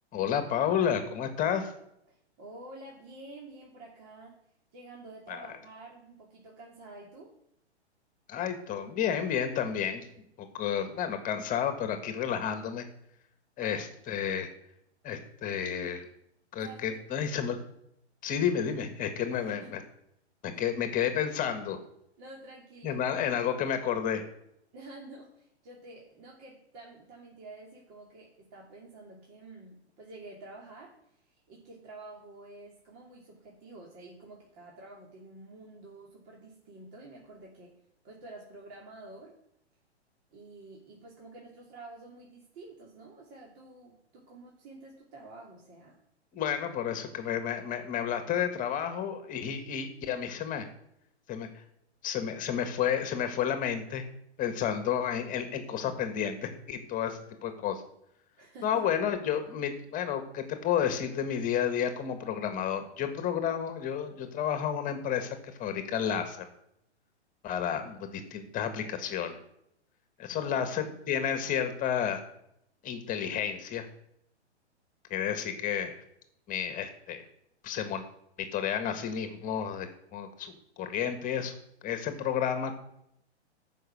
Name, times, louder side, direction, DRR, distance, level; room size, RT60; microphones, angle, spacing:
voice 1, 0.1-1.7 5.3-5.5 8.3-10.0 10.4-12.9 13.6-14.5 15.0-16.0 16.5-17.6 18.2-19.8 20.4-21.8 22.8-24.2 46.3-50.7 51.3-51.6 52.0-54.1 54.4-57.8 58.6-66.5 67.4-69.4 70.2-72.2 72.8-73.8 75.1-76.0 76.5-77.2 77.6-78.0 78.4-81.5 81.8-82.7, left 8 dB, 25° left, 8 dB, 1.7 m, -31 dB
voice 2, 2.1-4.4 4.7-7.3 13.6-13.9 16.6-17.0 19.3-19.7 20.5-20.6 22.2-23.2 24.7-37.8 38.0-39.4 40.3-46.0 58.4-58.8 70.3-71.0, right 2 dB, 40° right, -2 dB, 3.0 m, -49 dB
13.5 x 5.6 x 6.3 m, 0.77 s
figure-of-eight pair, 115°, 34 cm